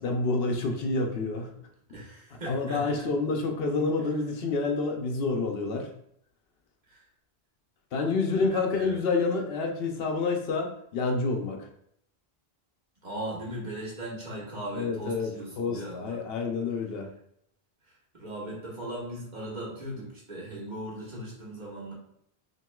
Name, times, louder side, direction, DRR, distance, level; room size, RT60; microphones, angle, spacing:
voice 1, 0.0-1.5 2.5-5.9 7.9-11.7 14.7-15.3 15.6-17.1, left 3 dB, 75° left, 3 dB, 0.9 m, -28 dB
voice 2, 1.9-3.1 6.9-7.0 8.3-9.0 13.0-16.2 18.1-21.9, right 1 dB, 45° right, -4 dB, 1.4 m, -38 dB
5.8 x 2.9 x 2.3 m, 0.72 s
omnidirectional pair, 1.0 m